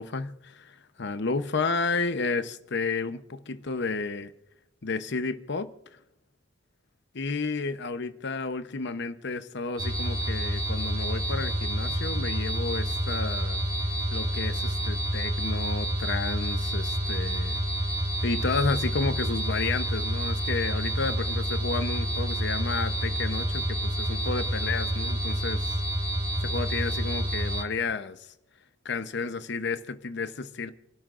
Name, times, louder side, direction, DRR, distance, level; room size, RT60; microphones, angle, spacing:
voice 1, 0.0-4.3 4.8-5.7 7.1-13.6 14.1-17.6 18.2-25.7 26.4-28.3 28.8-30.7, left 4 dB, 65° left, 0.9 m, -31 dB
sound 1, 9.8-27.6, right 1 dB, 25° right, 3.1 m, -28 dB
28.5 x 12.0 x 2.6 m
head